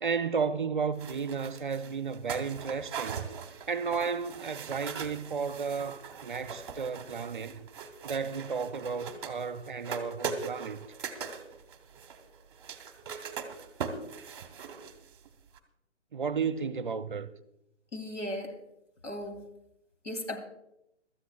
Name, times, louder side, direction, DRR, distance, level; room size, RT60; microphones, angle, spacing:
voice 1, 0.0-3.3 3.7-7.6 8.0-10.8 16.1-17.3, right 5 dB, 45° right, 0.6 m, -33 dB
sound 1, 1.0-15.3 15.5-15.6, right 6 dB, 20° right, 0.9 m, -41 dB
voice 2, 17.9-18.6 19.0-19.5 20.0-20.4, left 1 dB, 80° left, 2.9 m, -36 dB
23.5 x 13.5 x 2.3 m
figure-of-eight pair, 140°, 36 cm